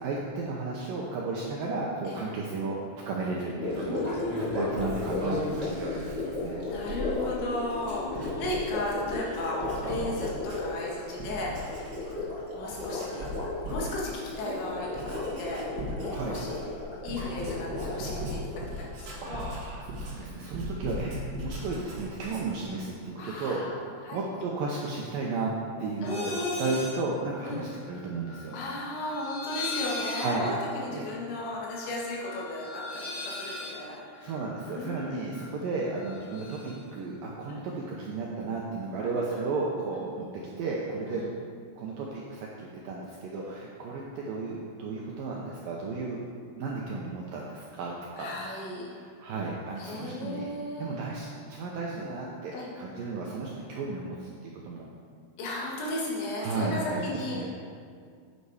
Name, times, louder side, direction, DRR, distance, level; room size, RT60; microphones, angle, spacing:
voice 1, 0.0-2.8 3.1-4.0 4.5-6.6 16.1-16.4 19.2-28.6 30.2-30.5 30.9-31.1 34.2-40.3 40.6-41.2 41.8-46.2 46.6-48.4 48.8-50.5 50.8-54.9 56.4-57.5, right 3 dB, 75° right, -3 dB, 2.1 m, -34 dB
Gurgling, 3.5-18.8, left 2 dB, 35° left, 0.6 m, -35 dB
voice 2, 3.6-4.6 6.6-12.2 12.5-13.2 13.7-15.7 16.0-16.7 17.0-18.4 18.8-19.5 23.2-23.7 24.0-24.4 26.0-26.6 27.5-27.6 28.5-34.3 34.7-35.3 37.5-37.7 39.0-39.4 41.1-41.3 48.2-48.9 49.8-51.0 52.5-52.7 55.4-57.5, left 1 dB, 80° left, -4 dB, 4.1 m, -35 dB
Writing, 4.2-10.9 11.2-12.4 12.7-22.7, equal, 45° right, 2.3 m, -38 dB
sound 1, 26.0-27.0 27.3-35.5 35.8-36.8, left 3 dB, 50° left, 2.3 m, -40 dB
9.3 x 8.1 x 4.9 m, 2.1 s
omnidirectional pair, 5.1 m